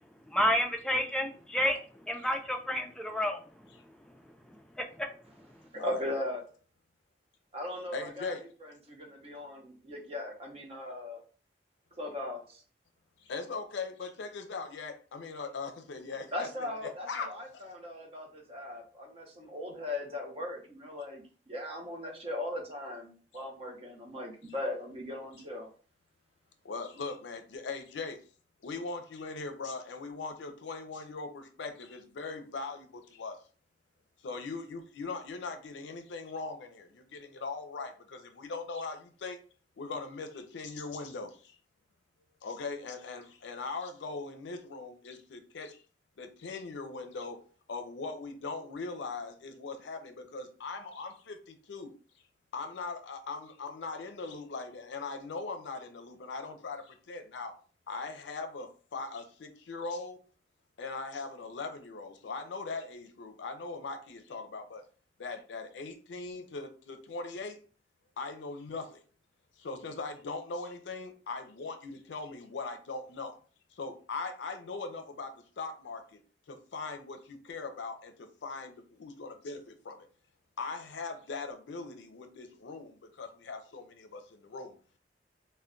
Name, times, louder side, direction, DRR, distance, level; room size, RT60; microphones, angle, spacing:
voice 1, 0.3-1.8 2.0-3.4 4.8-5.1, equal, 5° left, 0.4 m, -30 dB
voice 2, 5.7-6.4 7.5-8.4 8.6-11.2 12.0-12.6 16.3-25.7, left 1 dB, 35° right, 0.7 m, -38 dB
voice 3, 7.9-8.4 13.2-17.6 23.3-23.4 26.6-28.2 28.6-33.4 34.2-39.4 39.8-41.5 42.4-45.8 46.2-47.4 47.7-51.9 52.5-57.5 57.9-60.2 60.8-64.8 65.2-67.6 68.2-69.0 69.6-73.3 73.7-76.2 76.5-78.7 79.0-80.1 80.6-84.8, left 4 dB, 85° left, 0.5 m, -40 dB
2.2 x 2.1 x 3.6 m
head